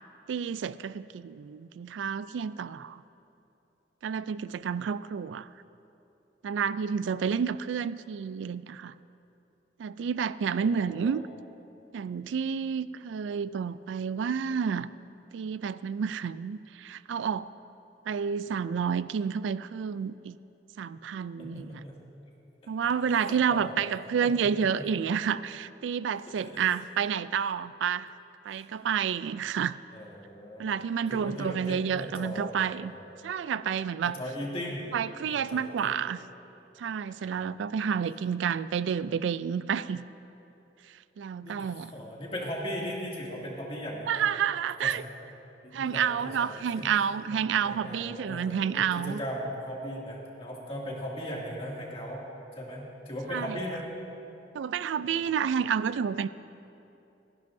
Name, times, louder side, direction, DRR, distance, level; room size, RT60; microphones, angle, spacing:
voice 1, 0.3-3.0 4.0-5.5 6.4-8.9 9.8-11.2 11.9-14.9 15.3-17.5 18.1-20.4 20.8-21.8 22.7-28.1 28.5-29.8 30.6-32.9 33.2-34.2 34.9-36.2 36.8-40.0 41.2-41.9 44.1-45.0 45.7-49.2 53.3-53.5 54.5-56.3, right 7 dB, 85° right, 16 dB, 0.3 m, -30 dB
voice 2, 10.6-11.2 21.4-22.0 22.8-23.9 24.2-24.8 26.3-26.6 28.4-28.7 29.9-30.7 31.1-33.3 34.0-34.9 35.2-35.9 37.2-37.6 41.4-44.3 44.8-45.0 45.6-46.9 47.3-47.4 47.6-52.2 52.5-53.8 55.0-55.5, equal, 30° left, -3 dB, 2.3 m, -38 dB
29.5 x 10.5 x 2.6 m, 2.9 s
head